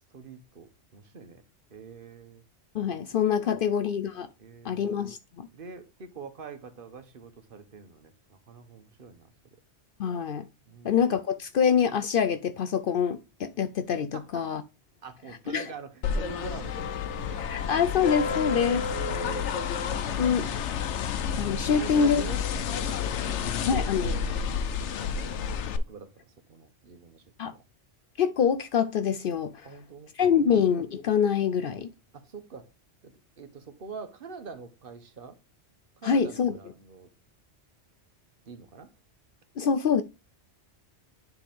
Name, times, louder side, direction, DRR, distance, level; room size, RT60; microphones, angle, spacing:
voice 1, 0.1-1.4 1.7-2.4 3.4-3.7 4.4-4.9 5.5-9.3 10.7-11.0 14.1-14.4 15.0-17.5 18.5-19.5 20.1-20.8 21.6-24.4 25.0-25.5 25.8-27.6 29.6-30.6 32.1-32.7 33.0-35.4 36.0-37.1 38.5-38.9, right 5 dB, 55° right, 1.2 m, -44 dB
voice 2, 2.7-4.3 4.6-5.5 10.0-10.5 10.8-14.6 15.5-15.7 17.4-18.8 20.2-20.5 21.4-22.2 23.7-24.1 27.4-27.5 28.2-29.7 30.2-31.9 36.0-36.6 39.6-40.0, left 7 dB, 60° left, 0.6 m, -25 dB
sound 1, 16.0-25.8, left 6 dB, 85° left, 1.0 m, -30 dB
10.0 x 3.5 x 3.5 m
omnidirectional pair, 1.2 m